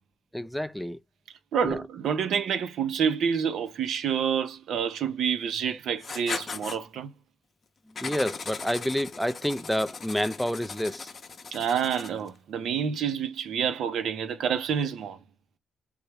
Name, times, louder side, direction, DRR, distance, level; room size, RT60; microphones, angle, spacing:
voice 1, 0.3-1.0 1.6-1.8 5.7-5.8 8.0-11.1, equal, ahead, 0.3 m, -29 dB
voice 2, 1.5-7.1 11.5-15.2, right 7 dB, 70° right, 0.6 m, -28 dB
Writing, 6.0-6.8 8.0-12.3, left 5 dB, 40° left, 0.6 m, -38 dB
3.5 x 3.0 x 3.3 m
cardioid pair, 90°, 0 cm